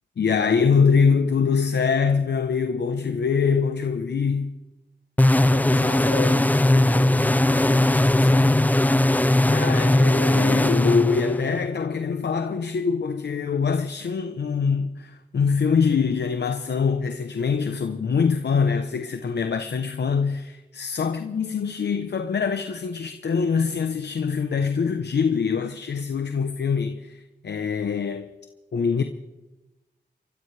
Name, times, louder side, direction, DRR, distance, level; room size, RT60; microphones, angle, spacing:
voice 1, 0.2-4.5 9.4-28.3 28.7-29.0, left 5 dB, 75° left, 0.9 m, -24 dB
sound 1, 5.2-11.7, left 1 dB, 10° left, 0.5 m, -19 dB
voice 2, 5.4-8.5, left 4 dB, 90° left, 5.2 m, -33 dB
29.5 x 14.0 x 3.4 m
cardioid pair, 70°, 18 cm